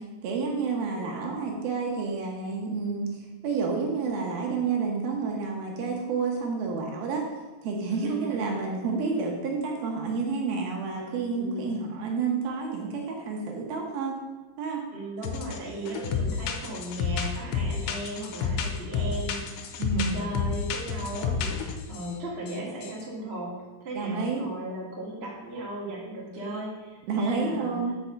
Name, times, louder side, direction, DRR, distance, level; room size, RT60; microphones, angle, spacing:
voice 1, 0.0-3.2 3.4-7.2 7.6-14.2 14.6-14.8 19.8-20.2 24.0-24.5 27.0-27.9, right 4 dB, 70° right, 0 dB, 2.6 m, -29 dB
voice 2, 0.9-1.4 7.9-8.3 11.3-11.8 14.9-23.6 23.8-27.8, right 1 dB, 35° right, -5 dB, 0.9 m, -36 dB
sound 1, 15.2-15.6 15.9-22.1 22.5-22.6 22.8-23.0, left 6 dB, 90° left, 2.8 m, -30 dB
6.2 x 5.9 x 6.8 m, 1.2 s
omnidirectional pair, 5.0 m